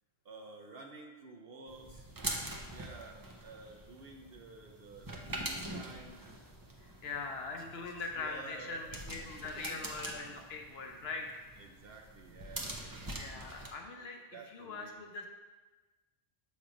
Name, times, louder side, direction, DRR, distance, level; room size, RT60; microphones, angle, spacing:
voice 1, 0.2-2.1 2.7-6.2 8.2-8.9 9.4-9.9 10.4-10.5 11.6-13.1 13.9-15.0, right 3 dB, 60° right, 1 dB, 0.7 m, -51 dB
sound 1, 1.7-13.7, right 1 dB, 30° right, 0.4 m, -44 dB
voice 2, 6.8-11.5 12.8-12.9 13.2-14.2 14.5-15.3, left 4 dB, 60° left, 2 dB, 0.8 m, -42 dB
7.1 x 3.2 x 5.0 m, 1.2 s
omnidirectional pair, 1.3 m